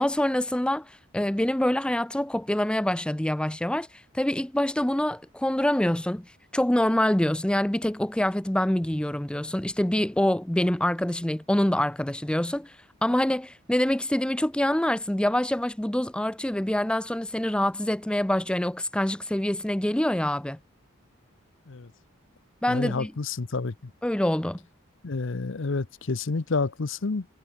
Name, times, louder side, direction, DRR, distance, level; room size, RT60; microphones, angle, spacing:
voice 1, 0.0-6.3 6.5-12.8 13.0-20.6 22.6-23.1 24.0-24.6, left 1 dB, 5° left, 0.4 m, -25 dB
voice 2, 22.7-23.9 25.0-27.3, left 3 dB, 65° left, 0.8 m, -29 dB
head